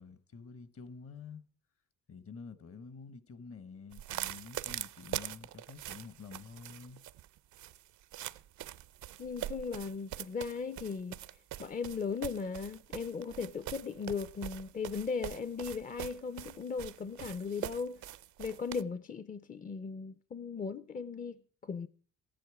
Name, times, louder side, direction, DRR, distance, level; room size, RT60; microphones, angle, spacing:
voice 1, 0.0-1.4 2.1-7.0, left 5 dB, 50° left, 1.1 m, -49 dB
sound 1, 3.9-18.8, right 13 dB, 75° right, 0.6 m, -43 dB
voice 2, 9.2-11.2 11.6-18.0 18.4-21.9, left 5 dB, 30° left, 0.5 m, -37 dB
14.0 x 10.5 x 4.8 m
cardioid pair, 90°, 30 cm